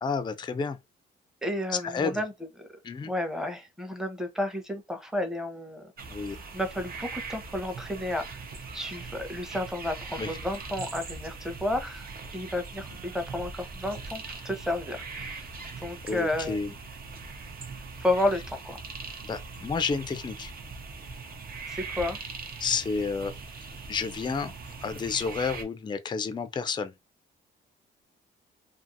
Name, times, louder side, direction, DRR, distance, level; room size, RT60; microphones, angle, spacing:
voice 1, 0.0-0.8 1.8-2.2 2.8-3.1 6.1-6.4 10.1-10.4 15.6-15.7 16.1-16.7 19.2-20.5 22.6-24.5 24.8-26.9, left 5 dB, 25° left, 0.4 m, -31 dB
voice 2, 1.4-2.3 2.6-2.7 3.0-5.9 6.5-8.5 8.7-12.1 12.3-15.5 15.8-16.6 18.0-18.8 21.7-22.2, left 1 dB, 5° right, 0.8 m, -31 dB
sound 1, 6.0-25.6, right 4 dB, 50° right, 0.7 m, -41 dB
2.6 x 2.4 x 2.6 m
cardioid pair, 90°, 20 cm